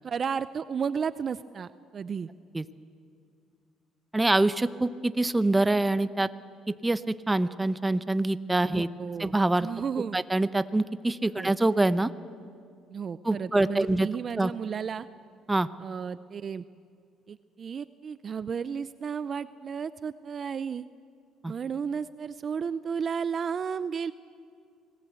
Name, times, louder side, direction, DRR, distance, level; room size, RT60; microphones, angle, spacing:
voice 1, 0.0-2.3 8.7-10.2 11.3-11.6 12.9-15.1 15.8-16.6 17.3-20.9 21.5-24.1, right 6 dB, 40° right, 15 dB, 0.5 m, -33 dB
voice 2, 4.1-6.3 6.7-8.9 9.2-9.7 10.1-12.1 13.2-14.1 14.4-14.5 15.5-15.7 21.4-21.5, right 2 dB, 15° right, 14 dB, 0.8 m, -25 dB
26.5 x 19.0 x 8.2 m, 2.3 s
cardioid pair, 105°, 0 cm